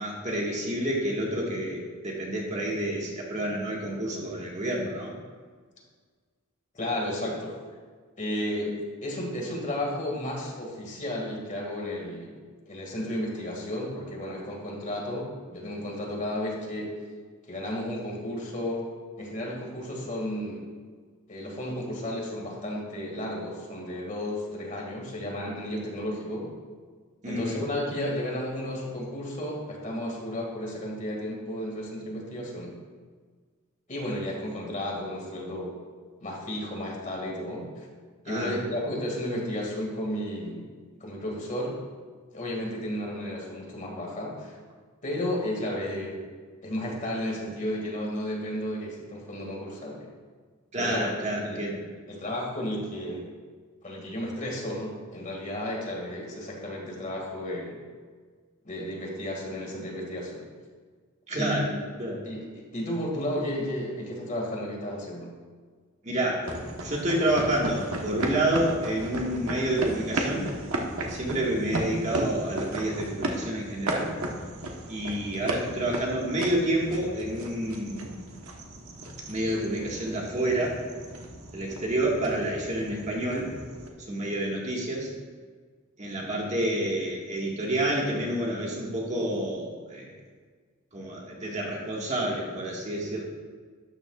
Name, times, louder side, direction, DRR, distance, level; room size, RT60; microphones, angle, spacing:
voice 1, 0.0-5.1 27.2-27.6 38.3-38.6 50.7-51.8 61.3-61.7 62.0-62.2 66.0-66.5 66.8-70.5 71.1-74.1 74.9-78.2 79.3-80.8 81.5-83.5 84.1-85.1 86.0-90.1 90.9-93.2, right 1 dB, 35° right, -3 dB, 1.7 m, -29 dB
voice 2, 6.7-7.5 8.2-12.3 12.7-17.0 17.5-18.9 19.2-20.7 21.3-26.5 27.3-32.7 33.9-35.8 36.2-37.9 38.3-40.7 41.0-41.8 42.3-44.6 45.0-46.3 46.6-50.1 50.8-51.1 51.4-51.6 52.1-53.3 53.8-57.8 58.6-60.5 61.4-61.6 62.2-65.3, left 1 dB, 35° left, -2 dB, 2.1 m, -33 dB
sound 1, 66.4-83.9, right 1 dB, 90° right, 1.2 m, -35 dB
12.5 x 9.2 x 2.4 m, 1.5 s
head